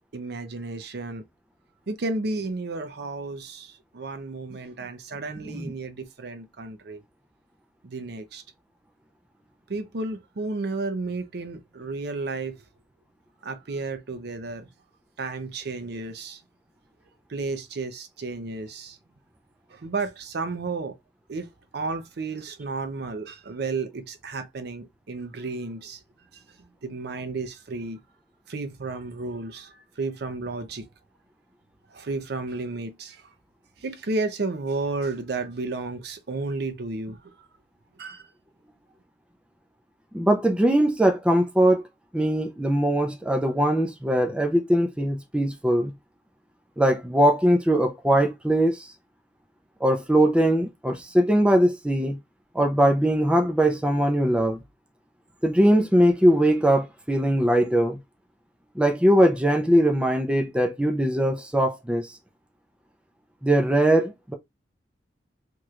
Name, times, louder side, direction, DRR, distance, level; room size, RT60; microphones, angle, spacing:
voice 1, 0.1-1.2 1.9-7.0 7.8-8.4 9.7-12.6 13.4-14.7 15.2-16.4 17.3-19.0 19.7-20.9 21.3-21.5 21.7-26.0 26.8-28.0 28.5-30.9 31.9-33.2 33.8-37.2 38.0-38.2, right 3 dB, 65° right, 0.6 m, -32 dB
voice 2, 40.1-41.8 42.1-45.9 46.8-48.9 49.8-52.2 52.5-54.6 55.4-58.0 58.8-62.1 63.4-64.3, right 1 dB, 5° right, 0.4 m, -21 dB
3.1 x 3.0 x 2.4 m
head